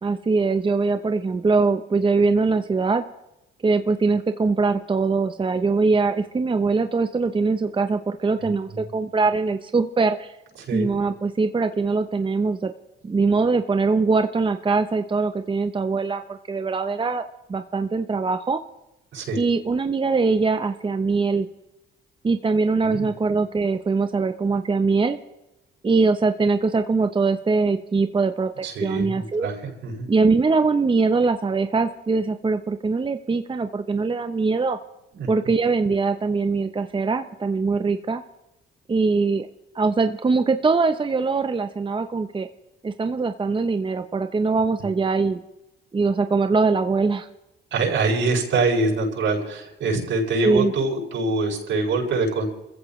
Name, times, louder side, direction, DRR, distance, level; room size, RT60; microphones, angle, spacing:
voice 1, 0.0-3.0 3.6-10.4 10.7-12.7 13.0-17.2 17.5-18.6 19.4-21.5 22.2-25.2 25.8-29.5 30.1-34.8 35.3-38.2 38.9-39.5 39.7-42.5 42.8-45.4 45.9-47.3 50.4-50.7, right 4 dB, 25° right, 8 dB, 0.9 m, -22 dB
voice 2, 28.6-30.1 35.1-35.3 44.8-44.9 47.7-52.5, right 3 dB, 75° right, -2 dB, 7.6 m, -24 dB
28.5 x 15.0 x 3.2 m, 0.95 s
cardioid pair, 90°, 20 cm